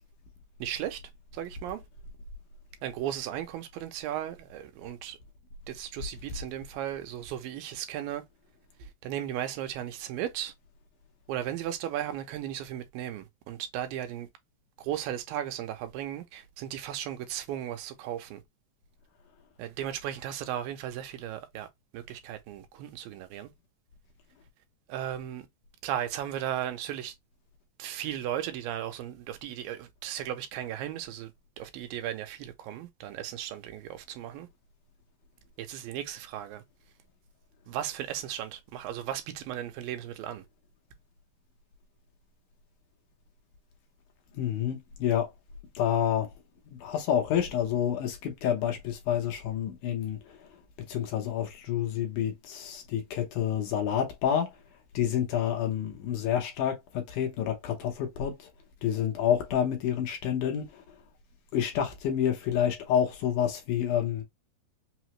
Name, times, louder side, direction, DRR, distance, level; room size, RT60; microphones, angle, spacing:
voice 1, 0.6-1.0 1.3-1.8 2.8-5.2 5.7-8.2 8.8-10.5 11.3-14.3 14.8-18.4 19.6-21.7 21.9-23.5 24.9-25.5 25.8-27.1 27.8-34.5 35.6-36.6 37.7-40.4, right 11 dB, 85° right, 2.4 m, -36 dB
voice 2, 44.3-45.3 45.8-46.3 46.7-50.4 50.9-54.5 54.9-58.5 58.8-60.8 61.5-64.2, left 9 dB, 75° left, 2.1 m, -28 dB
5.6 x 2.0 x 2.9 m
omnidirectional pair, 4.1 m